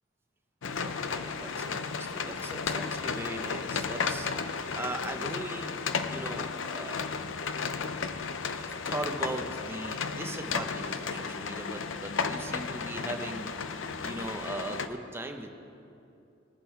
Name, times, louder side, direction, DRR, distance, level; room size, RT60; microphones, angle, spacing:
sound 1, 0.6-14.9, left 5 dB, 85° left, 0.6 m, -34 dB
voice 1, 0.8-5.8 6.1-7.2 8.5-13.5 14.0-15.5, right 1 dB, 15° right, 4 dB, 0.8 m, -39 dB
20.0 x 7.6 x 4.7 m, 2.6 s
head